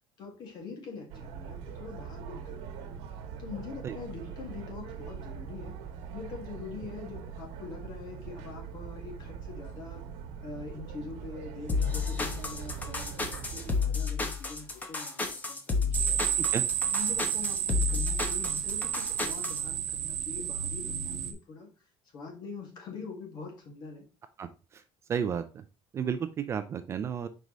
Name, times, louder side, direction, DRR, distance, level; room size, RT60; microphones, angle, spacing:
voice 1, 0.2-2.9 3.4-5.8 6.1-10.1 10.4-16.3 16.9-21.7 22.1-24.0, left 4 dB, 45° left, 2 dB, 2.0 m, -44 dB
sound 1, 1.1-13.8, right 7 dB, 80° right, 1.2 m, -42 dB
sound 2, 11.7-19.6, left 4 dB, 15° left, 0.9 m, -31 dB
sound 3, 15.9-21.3, right 10 dB, 60° right, 1.0 m, -31 dB
voice 2, 25.1-25.4 25.9-27.3, right 7 dB, 25° right, 9 dB, 0.4 m, -32 dB
5.4 x 4.8 x 3.8 m, 0.31 s
cardioid pair, 170°, 10 cm